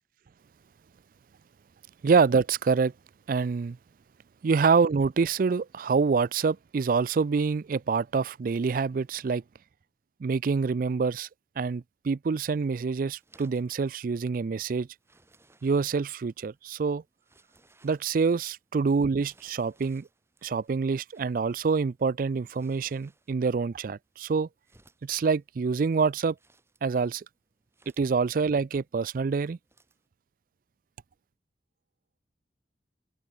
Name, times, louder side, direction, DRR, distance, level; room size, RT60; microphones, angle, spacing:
voice 1, 2.0-2.9 3.3-3.8 4.4-9.4 10.2-11.3 11.6-14.9 15.6-17.0 17.8-20.1 20.4-24.5 25.0-26.4 26.8-27.2 28.0-29.6, right 5 dB, 50° right, 0.4 m, -26 dB
sound 1, 12.6-30.1, right 2 dB, 15° right, 6.3 m, -65 dB
open air
head